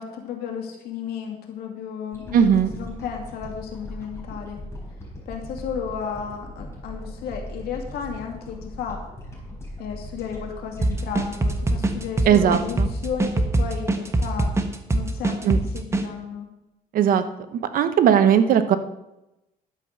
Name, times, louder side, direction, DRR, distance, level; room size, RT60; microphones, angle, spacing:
voice 1, 0.0-4.6 5.3-9.0 9.8-14.5 14.9-16.5, left 7 dB, 90° left, 2 dB, 2.5 m, -33 dB
sound 1, 2.1-14.5 14.9-15.0, left 1 dB, 15° left, 4.6 m, -39 dB
voice 2, 2.3-2.7 12.3-12.9 15.4-15.6 16.9-17.2 17.5-18.8, right 9 dB, 65° right, 11 dB, 1.0 m, -18 dB
sound 2, 10.8-16.1, right 2 dB, 15° right, 1.2 m, -23 dB
11.5 x 8.1 x 6.6 m, 0.93 s
cardioid pair, 130°, 16 cm